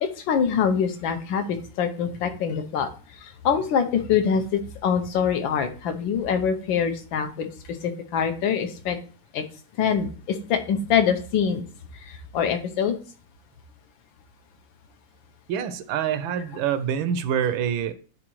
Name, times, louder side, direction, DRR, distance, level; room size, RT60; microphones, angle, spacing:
voice 1, 0.0-2.9 3.2-9.0 9.3-9.4 9.8-11.6 12.0-13.0, left 7 dB, 80° left, 1.5 m, -24 dB
voice 2, 15.5-17.9, right 8 dB, 85° right, 1.4 m, -26 dB
9.9 x 4.0 x 3.0 m
omnidirectional pair, 2.1 m